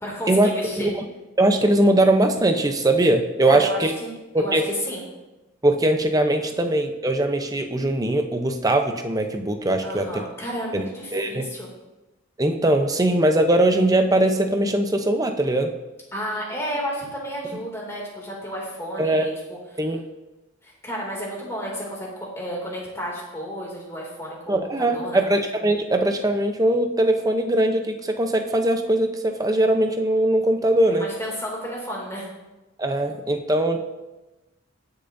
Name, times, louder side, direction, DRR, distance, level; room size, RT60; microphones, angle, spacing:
voice 1, 0.0-0.9 3.5-4.1 4.4-5.0 9.8-11.7 16.1-19.6 20.6-25.2 30.9-32.3, equal, 15° left, -3 dB, 2.6 m, -32 dB
voice 2, 1.4-3.9 4.3-4.6 5.6-10.2 10.7-11.5 12.4-15.7 19.0-19.3 19.8-20.0 24.5-31.1 32.8-33.8, right 1 dB, 15° right, 5 dB, 0.7 m, -21 dB
20.5 x 6.8 x 2.7 m, 1.0 s
head